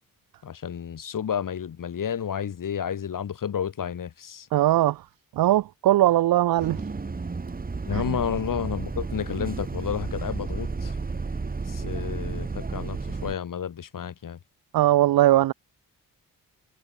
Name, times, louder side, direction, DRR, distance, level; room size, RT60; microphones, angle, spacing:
voice 1, 0.4-4.5 7.9-11.0 11.7-14.4, left 8 dB, 65° left, 4.7 m, -31 dB
voice 2, 4.5-5.0 5.4-6.8 7.9-8.0 14.7-15.5, right 14 dB, 80° right, 0.6 m, -20 dB
Bus, 6.6-13.3, right 4 dB, 25° right, 2.6 m, -32 dB
wide cardioid pair, 155°, 35 cm